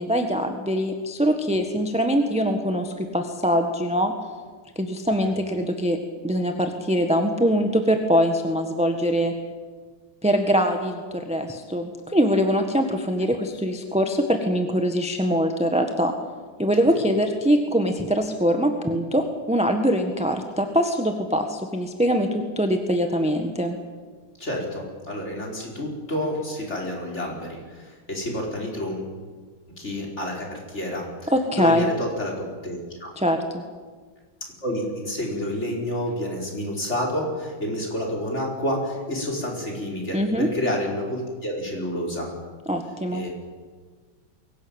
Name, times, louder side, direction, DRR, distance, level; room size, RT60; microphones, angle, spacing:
voice 1, 0.0-4.1 4.7-6.0 6.2-9.3 10.2-16.1 16.6-23.8 31.3-31.9 33.1-33.6 40.1-40.5 42.7-43.2, equal, 5° right, 5 dB, 1.2 m, -23 dB
voice 2, 24.4-29.1 29.8-33.1 34.6-42.3 43.1-43.3, left 1 dB, 30° left, -1 dB, 5.1 m, -29 dB
22.5 x 18.0 x 8.9 m, 1.5 s
omnidirectional pair, 2.4 m